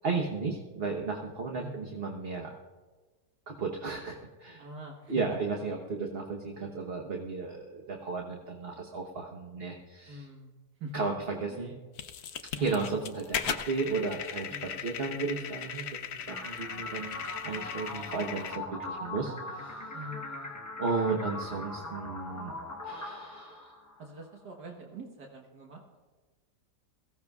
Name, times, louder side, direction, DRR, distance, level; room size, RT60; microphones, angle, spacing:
voice 1, 0.0-2.5 3.5-4.6 5.1-10.2 10.9-11.7 12.6-17.2 17.4-19.9 20.8-22.5 22.8-23.7, right 4 dB, 40° right, 1 dB, 1.1 m, -34 dB
voice 2, 1.5-1.9 4.6-5.2 10.1-10.5 10.8-11.0 11.5-11.8 12.6-12.7 14.5-14.8 19.9-20.5 24.0-26.0, right 1 dB, 75° right, 0 dB, 1.9 m, -44 dB
sound 1, 12.0-18.6, left 8 dB, 65° left, 0.6 m, -38 dB
sound 2, 16.3-24.2, left 2 dB, 15° left, 0.8 m, -41 dB
22.5 x 15.5 x 2.4 m, 1.3 s
omnidirectional pair, 1.8 m